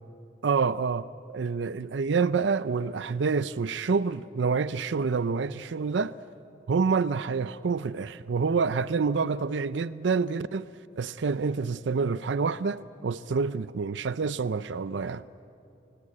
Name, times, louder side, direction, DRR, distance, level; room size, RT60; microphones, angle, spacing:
voice 1, 0.4-6.1 6.7-10.7 11.0-15.3, right 5 dB, 70° right, 0.5 m, -27 dB
28.0 x 17.5 x 8.6 m
head